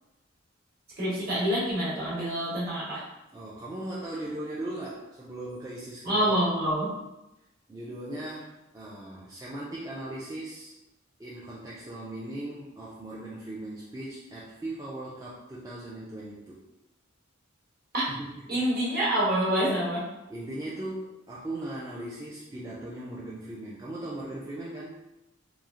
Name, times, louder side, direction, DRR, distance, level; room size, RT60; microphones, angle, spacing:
voice 1, 1.0-3.0 6.0-6.9 17.9-18.0 18.5-20.0, right 1 dB, 50° right, -7 dB, 1.1 m, -26 dB
voice 2, 3.3-6.4 7.7-10.7 11.2-16.6 18.2-18.4 20.3-25.0, right 1 dB, 15° right, -7 dB, 0.3 m, -38 dB
3.0 x 2.3 x 2.4 m, 0.94 s
head